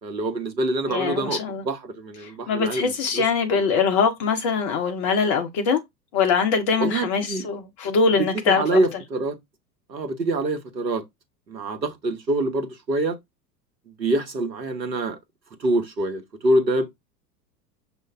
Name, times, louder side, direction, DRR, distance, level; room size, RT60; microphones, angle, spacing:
voice 1, 0.0-3.2 3.5-3.6 6.8-7.5 8.2-9.4 9.9-11.0 11.5-13.2 13.9-15.2 15.6-16.9, right 2 dB, 85° right, 1.1 m, -25 dB
voice 2, 0.9-1.6 2.2-5.8 6.1-8.8, left 5 dB, 20° left, 0.3 m, -23 dB
6.4 x 2.5 x 3.3 m
figure-of-eight pair, 85°, 49 cm